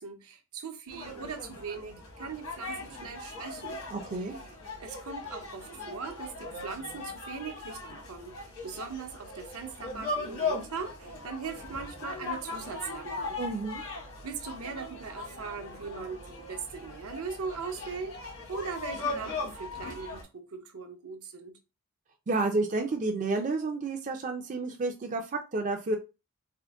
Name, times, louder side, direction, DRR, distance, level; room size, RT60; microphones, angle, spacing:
voice 1, 0.0-3.8 4.2-4.4 4.8-13.4 13.8-14.0 14.2-21.6, right 5 dB, 75° right, 0.7 m, -40 dB
sound 1, 0.9-20.2, left 3 dB, 80° left, 1.3 m, -39 dB
voice 2, 3.9-4.4 13.4-13.8 22.3-26.0, right 3 dB, 35° right, 0.4 m, -30 dB
3.6 x 2.1 x 3.4 m
head